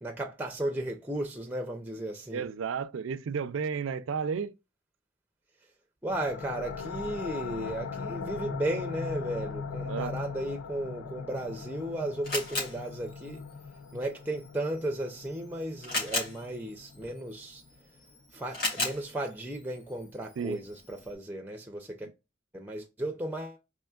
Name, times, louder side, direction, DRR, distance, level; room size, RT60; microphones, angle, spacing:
voice 1, 0.0-2.5 6.0-13.5 13.9-17.6 18.3-22.1 22.5-23.6, right 1 dB, 10° right, 0.4 m, -35 dB
voice 2, 2.3-4.5 9.9-10.1 20.4-20.6, right 6 dB, 75° right, 0.4 m, -32 dB
sound 1, 6.1-17.5, left 5 dB, 90° left, 0.4 m, -40 dB
Camera, 11.3-21.2, left 2 dB, 45° left, 2.2 m, -39 dB
4.3 x 3.0 x 2.3 m
head